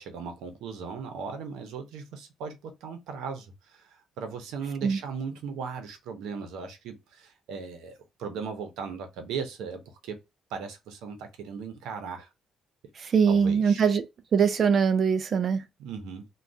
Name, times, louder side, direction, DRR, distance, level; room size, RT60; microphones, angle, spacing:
voice 1, 0.0-10.2 10.5-12.3 13.3-13.9 15.8-16.3, right 5 dB, 90° right, 0.8 m, -37 dB
voice 2, 13.0-14.1 14.3-15.6, right 6 dB, 45° right, 0.4 m, -22 dB
2.6 x 2.3 x 3.4 m
cardioid pair, 115°, 0 cm